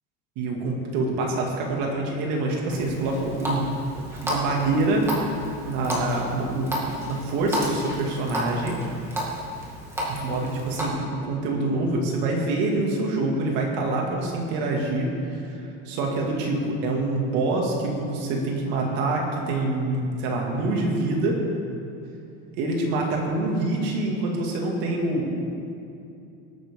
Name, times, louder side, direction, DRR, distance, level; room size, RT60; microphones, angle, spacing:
voice 1, 0.4-3.8 4.2-5.1 5.6-6.7 7.0-8.8 10.1-21.4 22.6-25.4, right 2 dB, 65° right, 0 dB, 2.3 m, -26 dB
Water tap faucet, 2.7-10.9, equal, 10° right, 1.9 m, -32 dB
19.0 x 9.0 x 3.7 m, 2.7 s
cardioid pair, 165°, 33 cm